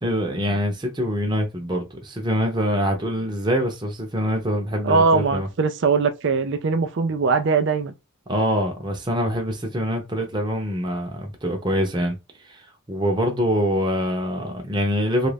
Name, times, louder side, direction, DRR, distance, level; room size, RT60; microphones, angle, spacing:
voice 1, 0.0-5.5 8.3-12.2 12.5-12.6 12.9-15.3, equal, 20° right, 0.8 m, -24 dB
voice 2, 4.8-7.9, right 4 dB, 55° right, 0.4 m, -21 dB
3.2 x 2.5 x 3.3 m
head